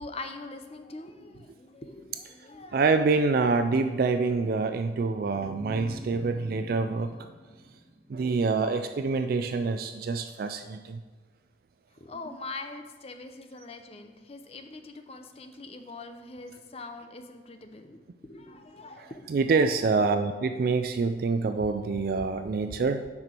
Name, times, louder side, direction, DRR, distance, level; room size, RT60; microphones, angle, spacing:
voice 1, 0.0-2.8 11.9-19.7, left 3 dB, 35° left, 7 dB, 0.6 m, -43 dB
voice 2, 2.7-7.2 8.1-11.0 19.0-23.1, right 4 dB, 55° right, 8 dB, 0.3 m, -26 dB
sound 1, 5.2-8.4, equal, 30° right, 1.3 m, -45 dB
9.6 x 5.9 x 4.5 m, 1.4 s
head